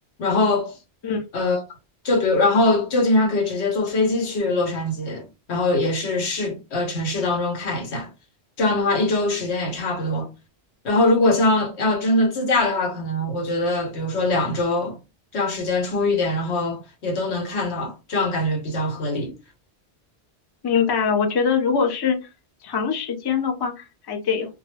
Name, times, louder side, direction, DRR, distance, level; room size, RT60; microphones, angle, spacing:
voice 1, 0.2-0.8 1.3-1.6 2.0-8.1 8.6-10.3 10.8-15.0 15.3-19.3, left 2 dB, 85° left, 1.1 m, -22 dB
voice 2, 20.6-22.3 22.6-24.5, left 6 dB, 35° left, 0.4 m, -23 dB
2.2 x 2.0 x 3.2 m
omnidirectional pair, 1.1 m